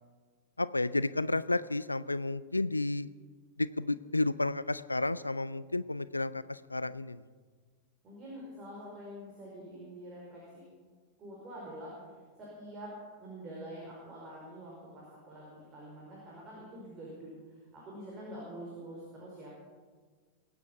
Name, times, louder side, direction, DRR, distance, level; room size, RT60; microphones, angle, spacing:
voice 1, 0.6-3.1 3.6-7.2, left 2 dB, 85° left, 17 dB, 0.4 m, -31 dB
voice 2, 8.0-10.6 11.2-11.9 12.4-19.5, right 1 dB, 30° right, -4 dB, 4.9 m, -46 dB
22.5 x 9.7 x 5.7 m, 1.5 s
figure-of-eight pair, 90°, 0 cm